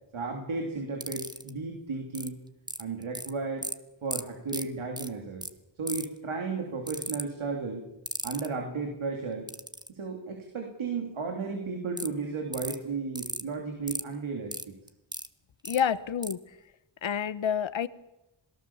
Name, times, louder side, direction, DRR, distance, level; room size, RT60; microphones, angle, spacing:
voice 1, 0.1-2.4 2.8-3.7 4.0-5.5 5.8-7.8 8.2-9.5 9.9-14.6, right 4 dB, 80° right, 2 dB, 3.1 m, -34 dB
sound 1, 1.0-1.5 2.1-2.3 2.7-3.3 3.6-3.7 4.1-4.2 4.5-4.6 5.0-5.1 5.4-5.5 5.9-6.2 6.9-7.2 8.1-8.5 9.5-9.9 12.0-12.1 12.5-12.8 13.2-13.4 13.9-14.0 14.5-15.3 15.6-15.8 16.2-16.3, right 1 dB, 10° right, 1.4 m, -34 dB
voice 2, 15.6-16.4 17.0-17.9, left 8 dB, 70° left, 15 dB, 1.1 m, -28 dB
26.5 x 18.0 x 7.2 m, 0.92 s
cardioid pair, 40°, 47 cm